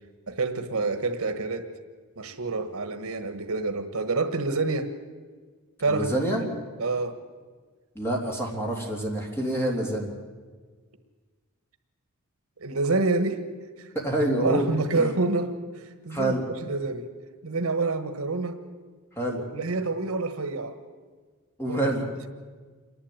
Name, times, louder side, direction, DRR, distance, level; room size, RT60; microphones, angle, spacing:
voice 1, 0.3-1.7 2.2-4.9 5.8-6.5 6.8-7.2 12.6-13.4 13.8-13.9 14.4-17.1 17.4-18.6 19.5-20.8 21.7-21.9, right 3 dB, 80° right, 8 dB, 1.4 m, -28 dB
voice 2, 5.9-6.4 7.9-10.1 13.9-14.7 14.9-15.1 16.1-16.4 19.2-19.4 21.6-22.0, right 1 dB, 10° left, -1 dB, 3.3 m, -27 dB
27.5 x 11.0 x 8.8 m, 1.5 s
head